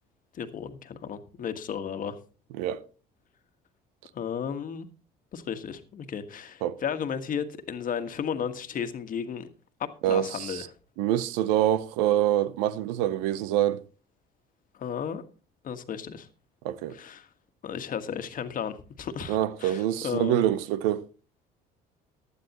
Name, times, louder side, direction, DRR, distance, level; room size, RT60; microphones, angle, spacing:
voice 1, 0.3-2.2 4.1-4.9 5.3-9.5 9.8-10.7 14.8-15.2 15.6-16.3 16.9-17.3 17.6-20.4, left 7 dB, 50° left, 1.5 m, -34 dB
voice 2, 10.0-10.7 11.0-13.8 16.6-17.0 19.3-21.0, right 12 dB, 85° right, 0.7 m, -25 dB
15.5 x 11.5 x 3.0 m
supercardioid pair, 80°, 18 cm